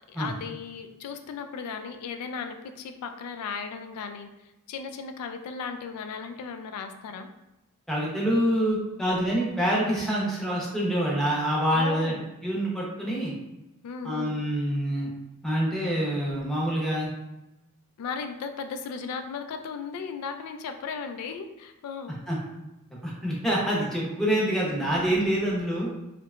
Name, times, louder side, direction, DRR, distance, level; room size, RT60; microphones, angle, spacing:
voice 1, 0.1-4.3 4.7-7.3 11.7-12.2 13.8-14.4 18.0-22.2, left 5 dB, 80° left, 8 dB, 0.3 m, -36 dB
voice 2, 7.9-12.1 12.4-13.3 14.0-15.1 15.4-17.1 22.3-22.4 23.0-25.9, equal, ahead, -5 dB, 0.6 m, -26 dB
2.8 x 2.1 x 2.3 m, 0.95 s
head